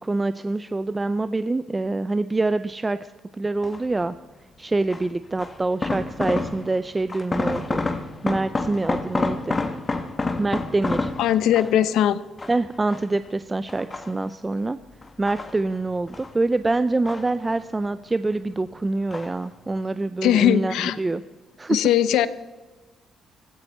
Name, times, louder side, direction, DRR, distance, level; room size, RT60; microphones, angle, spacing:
voice 1, 0.0-3.0 3.4-4.1 4.6-7.8 8.2-9.6 10.4-11.1 12.5-14.8 15.2-21.2 21.6-21.8, right 2 dB, 20° right, 13 dB, 0.5 m, -25 dB
sound 1, 3.6-4.0 4.9-6.8 7.1-11.9 12.4-13.3 13.7-14.5 15.0-16.4 16.6-17.8 18.1-18.7 19.1-19.5 19.8-19.9, left 3 dB, 25° left, 1.6 m, -29 dB
voice 2, 11.2-12.2 20.2-21.0 21.7-22.3, left 11 dB, 85° left, 15 dB, 0.7 m, -19 dB
16.0 x 15.0 x 4.3 m, 1.2 s
cardioid pair, 90°, 0 cm